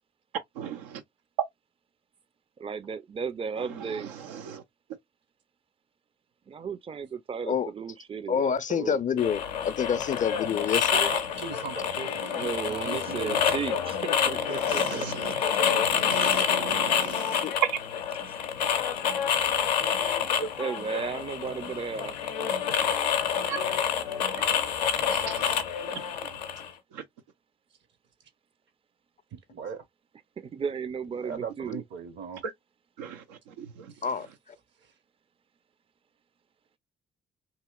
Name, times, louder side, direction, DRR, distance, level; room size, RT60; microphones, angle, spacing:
voice 1, 0.6-1.0 4.3-4.6 14.7-15.3 15.6-17.4 20.4-20.5 23.5-23.7 24.3-24.6 25.1-25.6 26.9-27.0 33.0-33.9, right 7 dB, 85° right, 0.5 m, -39 dB
voice 2, 2.6-4.1 6.5-9.0 12.3-15.3 20.6-22.2 30.4-31.8, right 6 dB, 25° right, 0.4 m, -34 dB
voice 3, 8.3-11.1 17.4-17.5 34.0-34.3, left 7 dB, 40° left, 0.5 m, -27 dB
sound 1, 9.2-26.7, left 8 dB, 90° left, 0.4 m, -28 dB
voice 4, 10.9-13.5 14.9-15.1 29.3-29.8 31.2-32.4 33.9-34.0 34.8-34.9, right 6 dB, 60° right, 0.9 m, -38 dB
2.9 x 2.8 x 2.2 m
hypercardioid pair, 45°, 21 cm